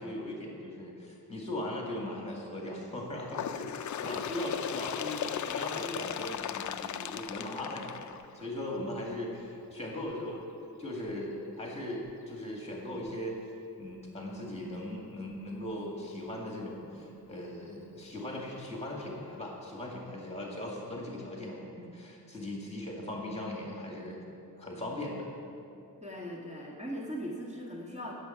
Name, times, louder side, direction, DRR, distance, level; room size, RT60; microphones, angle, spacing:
voice 1, 0.0-10.5 10.8-13.4 13.8-24.2 24.6-25.3, left 1 dB, 15° left, -2 dB, 2.1 m, -39 dB
Bird, 3.3-8.7 9.6-9.7 10.1-10.2 11.1-11.2 12.1-12.2 13.1-13.2, left 9 dB, 50° left, 0.4 m, -37 dB
voice 2, 26.0-28.2, equal, 15° right, -5 dB, 1.7 m, -39 dB
18.0 x 7.3 x 5.7 m, 2.7 s
wide cardioid pair, 155°, 37 cm